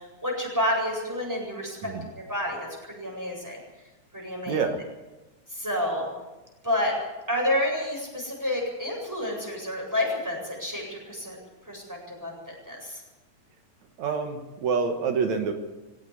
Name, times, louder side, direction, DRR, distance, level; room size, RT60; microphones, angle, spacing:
voice 1, 0.0-3.6 4.1-4.6 5.5-6.1 6.6-7.0 7.3-11.4 11.6-13.0, left 1 dB, 5° right, -1 dB, 7.8 m, -29 dB
voice 2, 4.5-4.8 14.0-15.5, right 5 dB, 75° right, 6 dB, 2.7 m, -27 dB
20.0 x 17.5 x 8.1 m, 1.1 s
omnidirectional pair, 3.3 m